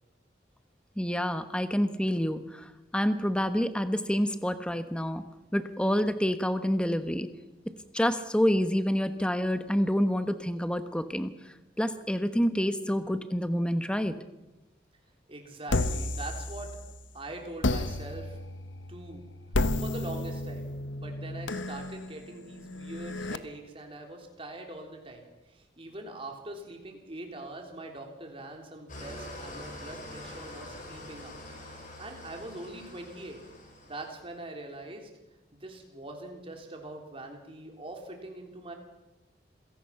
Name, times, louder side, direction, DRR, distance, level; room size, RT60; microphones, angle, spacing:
voice 1, 1.0-2.6 2.9-5.2 5.5-7.3 7.9-11.3 11.8-14.1, equal, 5° left, 10 dB, 1.1 m, -27 dB
voice 2, 15.3-16.7 17.1-18.4 18.9-19.3 19.8-31.3 32.0-33.4 33.8-35.1 35.5-38.7, right 2 dB, 30° right, 3 dB, 3.6 m, -43 dB
sound 1, 15.7-17.1 17.6-23.4, left 2 dB, 85° left, 1.1 m, -32 dB
Engine starting / Idling, 28.9-34.3, left 1 dB, 45° left, 6.6 m, -45 dB
26.5 x 17.5 x 5.9 m, 1.1 s
head